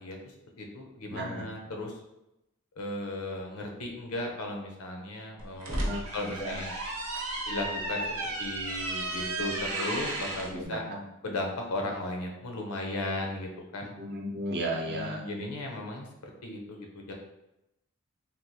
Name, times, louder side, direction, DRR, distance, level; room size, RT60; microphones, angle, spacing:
voice 1, 0.0-2.0 2.8-6.7 7.5-8.0 8.4-10.8 11.2-14.0 14.8-17.1, left 2 dB, 85° left, 2 dB, 0.7 m, -36 dB
voice 2, 1.1-1.4 5.7-6.0 6.4-6.6 10.5-11.0 14.0-15.2, right 1 dB, 50° right, 0 dB, 0.6 m, -34 dB
sound 1, 5.4-10.5, right 2 dB, 85° right, 0.8 m, -33 dB
3.4 x 2.4 x 2.8 m, 0.89 s
head